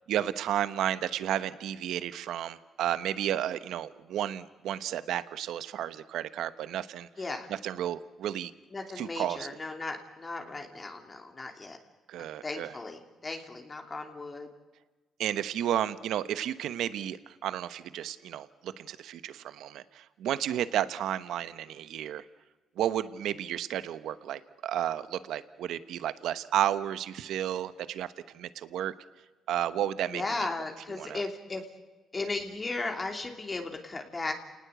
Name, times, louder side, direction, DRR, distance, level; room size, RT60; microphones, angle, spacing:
voice 1, 0.1-7.1 7.5-8.5 9.0-9.5 12.1-12.7 15.2-22.2 22.8-28.1 28.3-28.9 29.5-30.2 31.0-31.2, right 11 dB, 80° right, 13 dB, 1.1 m, -32 dB
voice 2, 7.2-7.5 8.7-11.8 12.4-14.5 30.1-31.6 32.1-34.3, left 3 dB, 30° left, 3 dB, 3.0 m, -36 dB
29.0 x 19.0 x 8.2 m, 1.2 s
cardioid pair, 90°, 0 cm